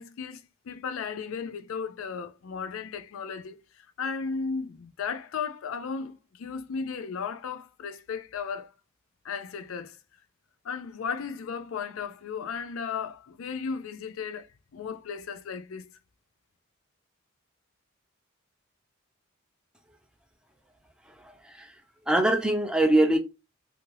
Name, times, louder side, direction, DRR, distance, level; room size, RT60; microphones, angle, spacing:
voice 1, 0.0-8.7 9.2-10.0 10.6-14.5 14.7-15.9, left 5 dB, 85° left, 0.4 m, -35 dB
voice 2, 21.0-23.2, right 1 dB, 5° right, 0.5 m, -24 dB
2.7 x 2.6 x 3.0 m
head